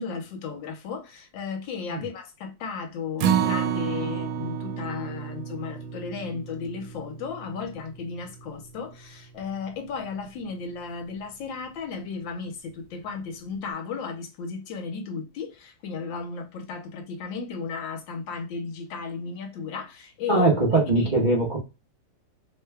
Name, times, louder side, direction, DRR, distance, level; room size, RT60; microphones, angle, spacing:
voice 1, 0.0-20.5 21.0-21.1, left 5 dB, 75° left, 1.5 m, -34 dB
Acoustic guitar, 3.2-9.5 9.9-10.0 10.4-10.5, right 8 dB, 90° right, 1.4 m, -30 dB
voice 2, 20.3-21.6, right 2 dB, 40° right, 0.6 m, -21 dB
3.5 x 2.2 x 3.3 m
omnidirectional pair, 2.1 m